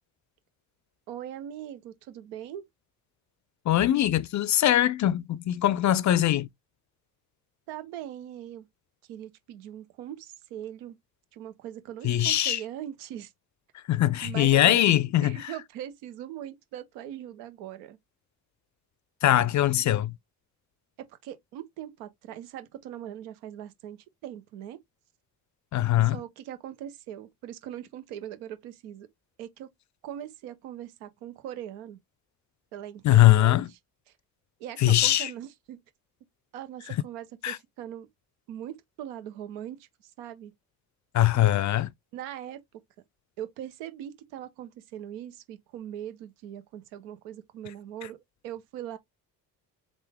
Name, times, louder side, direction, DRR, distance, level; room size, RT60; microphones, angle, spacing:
voice 1, 1.1-2.6 7.7-8.7 9.1-11.0 11.3-13.3 14.2-14.9 15.2-18.0 19.4-19.8 21.2-24.8 26.0-29.1 29.4-29.7 30.0-32.0 32.7-33.8 34.6-35.8 36.5-38.1 38.5-39.9 40.2-40.5 41.3-41.7 42.1-42.6 43.4-48.2 48.4-49.0, right 11 dB, 85° right, 0.9 m, -40 dB
voice 2, 3.7-6.5 12.0-12.6 13.9-15.4 19.2-20.1 25.7-26.2 33.0-33.7 34.8-35.3 37.4-37.6 41.1-41.9, left 13 dB, 40° left, 0.4 m, -21 dB
3.7 x 2.5 x 3.4 m
hypercardioid pair, 55°, 45 cm